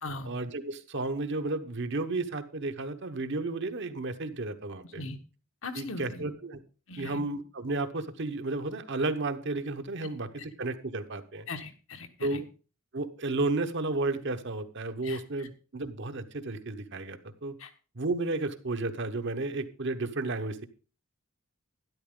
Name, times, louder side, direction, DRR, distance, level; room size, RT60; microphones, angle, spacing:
voice 1, 0.2-5.0 5.7-6.6 7.0-11.5 12.2-12.5 12.9-17.6 17.9-20.7, right 2 dB, 55° right, 8 dB, 1.0 m, -32 dB
voice 2, 5.6-6.2 6.9-7.2 11.5-12.4 15.0-15.2 17.6-17.7, left 3 dB, 65° left, 7 dB, 1.4 m, -39 dB
12.0 x 11.0 x 3.8 m, 0.35 s
head